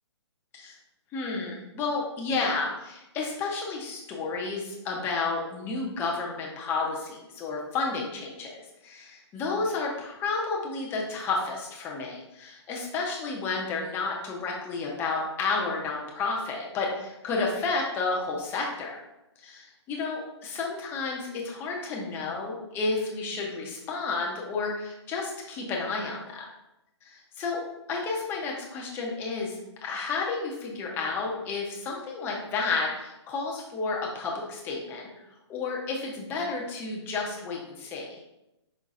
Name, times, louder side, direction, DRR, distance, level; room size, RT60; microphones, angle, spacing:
voice 1, 1.1-8.5 8.8-19.0 19.4-26.4 27.0-27.6 27.9-35.1 35.5-38.1, left 4 dB, 15° left, -2 dB, 0.7 m, -31 dB
5.5 x 3.8 x 2.5 m, 0.91 s
hypercardioid pair, 155°, 15 cm